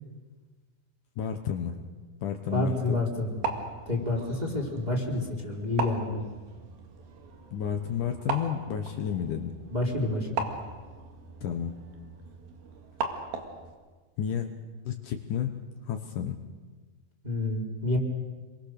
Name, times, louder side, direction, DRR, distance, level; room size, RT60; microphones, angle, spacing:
voice 1, 1.2-1.8 2.2-3.0 7.5-9.6 11.4-11.7 14.2-14.5 14.9-15.5 15.9-16.4, left 9 dB, 70° left, 5 dB, 2.5 m, -31 dB
voice 2, 2.5-3.4 3.9-6.2 9.7-10.4 17.2-18.0, left 2 dB, 10° right, -2 dB, 3.8 m, -29 dB
sound 1, 3.1-13.7, right 5 dB, 90° right, 3.9 m, -38 dB
27.5 x 23.0 x 6.7 m, 1.4 s
omnidirectional pair, 4.1 m